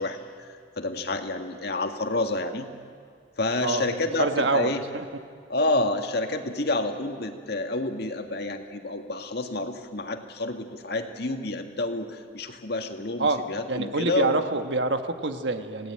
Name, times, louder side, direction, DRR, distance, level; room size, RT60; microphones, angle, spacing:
voice 1, 0.0-2.7 3.4-4.8 5.5-14.4, left 2 dB, 60° left, 5 dB, 1.9 m, -29 dB
voice 2, 4.2-5.1 13.2-13.4 13.7-15.9, right 3 dB, 70° right, 7 dB, 1.4 m, -26 dB
26.5 x 17.5 x 9.0 m, 2.1 s
head